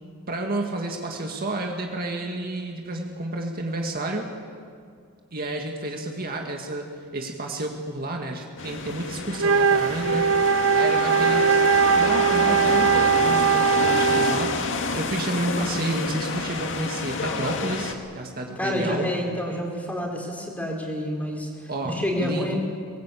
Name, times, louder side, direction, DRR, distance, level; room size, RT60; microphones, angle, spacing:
voice 1, 0.3-4.3 5.3-19.1 21.7-22.5, right 1 dB, 45° right, 2 dB, 2.0 m, -30 dB
sound 1, 8.6-17.9, left 4 dB, 60° left, 2.0 m, -29 dB
Wind instrument woodwind instrument, 9.3-14.6, right 5 dB, 60° right, 0.7 m, -20 dB
voice 2, 18.6-22.6, left 1 dB, 5° left, 0 dB, 4.3 m, -28 dB
22.5 x 21.5 x 8.5 m, 2.2 s
head